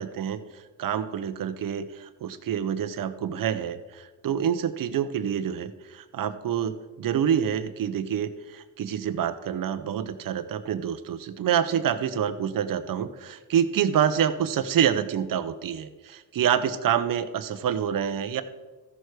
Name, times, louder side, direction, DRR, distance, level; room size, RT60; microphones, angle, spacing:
voice 1, 0.0-18.4, right 9 dB, 50° right, 12 dB, 0.9 m, -27 dB
14.0 x 6.6 x 4.7 m, 1.3 s
cardioid pair, 95°, 43 cm